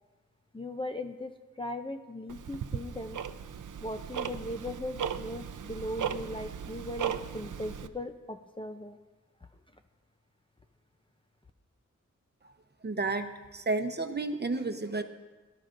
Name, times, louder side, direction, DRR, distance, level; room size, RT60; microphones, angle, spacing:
voice 1, 0.5-3.2 3.8-9.0, left 1 dB, 15° left, 5 dB, 0.6 m, -38 dB
Tick-tock, 2.3-7.9, right 8 dB, 85° right, 0.6 m, -37 dB
voice 2, 12.8-15.0, right 3 dB, 35° right, 6 dB, 0.9 m, -31 dB
23.0 x 12.5 x 2.6 m, 1.3 s
wide cardioid pair, 95°, 30 cm